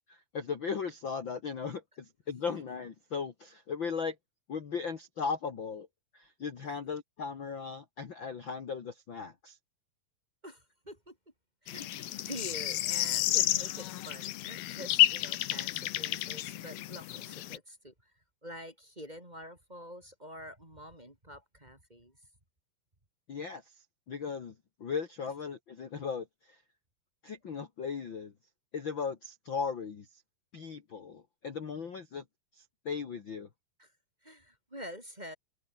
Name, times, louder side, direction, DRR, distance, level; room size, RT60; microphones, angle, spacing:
voice 1, 0.1-4.2 4.5-5.9 6.1-9.6 23.3-23.6 24.1-24.5 24.8-26.6 27.2-28.3 28.7-30.1 30.5-32.2 32.6-33.5, left 5 dB, 40° left, 2.2 m, -37 dB
voice 2, 10.4-11.2 11.6-18.1 18.4-22.2 33.8-33.9 34.2-35.3, equal, 10° right, 3.5 m, -47 dB
sound 1, 11.7-17.6, left 14 dB, 85° left, 3.0 m, -31 dB
omnidirectional pair, 4.1 m